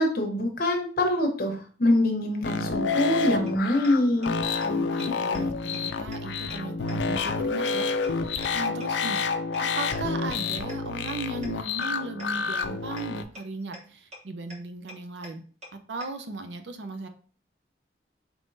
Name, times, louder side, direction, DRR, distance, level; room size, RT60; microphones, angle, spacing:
voice 1, 0.0-4.3, left 1 dB, 55° left, 3 dB, 1.0 m, -24 dB
sound 1, 2.4-13.2, left 4 dB, 90° left, 0.4 m, -29 dB
sound 2, 3.5-3.6 3.8-3.9 4.2-4.3 4.6-4.7 5.0-5.1 5.3-5.4 5.7-5.8 6.1-6.2 6.5-6.6 6.9-7.0 7.3-7.4 7.7-7.8 8.0-8.1 8.4-8.5 8.8-8.9 9.2-9.3 9.5-9.6 9.9-10.0 10.3-10.4 10.7-10.8 11.1-11.2 11.4-11.5 11.8-11.9 12.2-12.3 12.6-12.7 13.0-13.1 13.3-13.4 13.7-13.8 14.1-14.2 14.5-14.6 14.9-15.0 15.2-15.3 15.6-15.7 16.0-16.1, equal, 40° right, 1.0 m, -42 dB
voice 2, 4.6-9.2 9.6-15.4 15.7-17.1, right 3 dB, 80° right, 7 dB, 0.6 m, -37 dB
4.5 x 3.6 x 2.6 m, 0.42 s
head